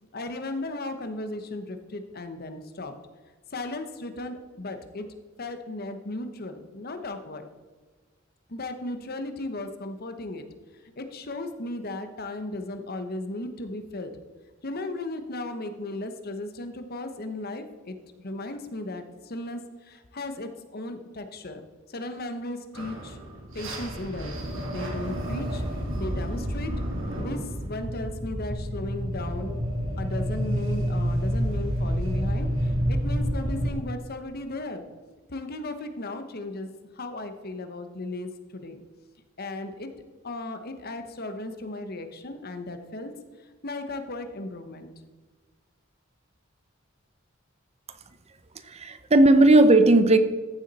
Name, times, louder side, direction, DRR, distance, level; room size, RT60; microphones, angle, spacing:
voice 1, 0.1-2.9 3.5-5.1 5.4-7.4 8.5-10.4 11.0-14.1 14.6-21.6 21.9-23.2 23.5-25.6 25.9-26.7 27.2-29.6 30.0-34.8 35.3-36.7 36.9-38.8 39.4-39.9 40.2-43.1 43.6-44.9, left 2 dB, 50° left, 8 dB, 1.1 m, -36 dB
sound 1, 22.7-33.7, equal, 75° right, 2.5 m, -29 dB
voice 2, 48.7-50.2, right 2 dB, 30° right, 11 dB, 0.7 m, -16 dB
14.0 x 7.2 x 4.2 m, 1.3 s
head